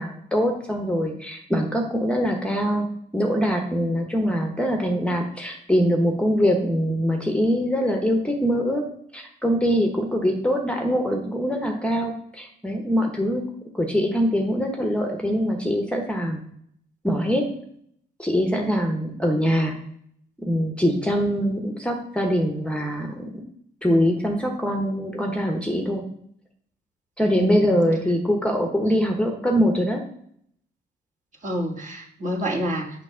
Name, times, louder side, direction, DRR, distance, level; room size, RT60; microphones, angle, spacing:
voice 1, 0.0-2.9 3.1-8.8 9.1-13.4 13.7-16.4 17.0-17.4 18.2-19.8 20.4-23.3 23.8-26.0 27.2-30.0, equal, 5° left, 3 dB, 0.9 m, -23 dB
voice 2, 27.2-27.7 31.4-33.0, equal, 40° right, -1 dB, 1.5 m, -28 dB
6.1 x 3.0 x 5.5 m, 0.68 s
cardioid pair, 90°, 20 cm